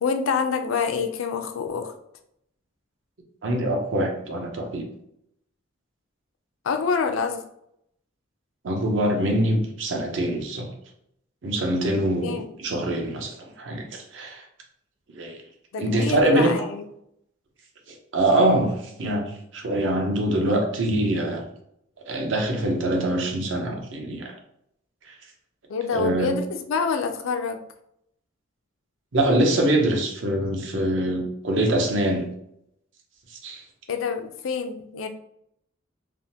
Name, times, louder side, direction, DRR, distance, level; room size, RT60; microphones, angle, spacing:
voice 1, 0.0-1.9 6.6-7.4 12.2-12.4 15.7-16.8 25.7-27.6 33.9-35.1, left 5 dB, 80° left, 7 dB, 0.4 m, -26 dB
voice 2, 3.4-4.9 8.6-10.7 11.4-14.4 15.1-15.4 15.8-16.6 18.1-21.4 22.1-24.3 25.9-26.3 29.1-32.3 33.4-33.6, right 1 dB, 65° right, 3 dB, 0.6 m, -24 dB
3.4 x 2.1 x 2.7 m, 0.75 s
head